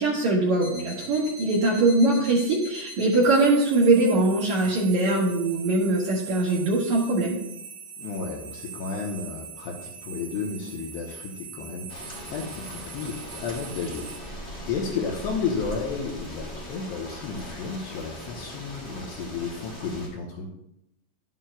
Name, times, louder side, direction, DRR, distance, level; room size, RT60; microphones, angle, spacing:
voice 1, 0.0-7.4, right 2 dB, 85° right, -6 dB, 1.6 m, -22 dB
sound 1, 0.6-14.2, right 4 dB, 35° right, 3.3 m, -42 dB
voice 2, 8.0-14.3 14.7-20.5, left 5 dB, 75° left, -1 dB, 2.6 m, -33 dB
sound 2, 11.9-20.1, equal, 25° left, 1.0 m, -40 dB
11.5 x 9.3 x 2.2 m, 0.83 s
omnidirectional pair, 5.7 m